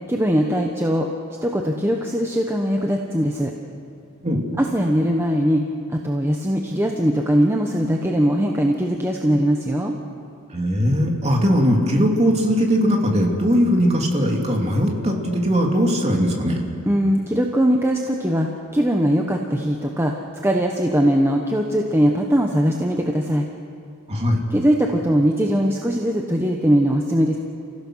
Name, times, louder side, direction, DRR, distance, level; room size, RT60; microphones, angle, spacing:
voice 1, 0.1-1.1 1.4-3.5 4.6-5.6 5.9-9.9 16.9-23.5 24.5-27.4, equal, 10° right, 1 dB, 1.1 m, -20 dB
voice 2, 10.5-16.6 24.1-24.4, equal, 30° right, 0 dB, 2.9 m, -19 dB
30.0 x 16.0 x 6.4 m, 2.4 s
head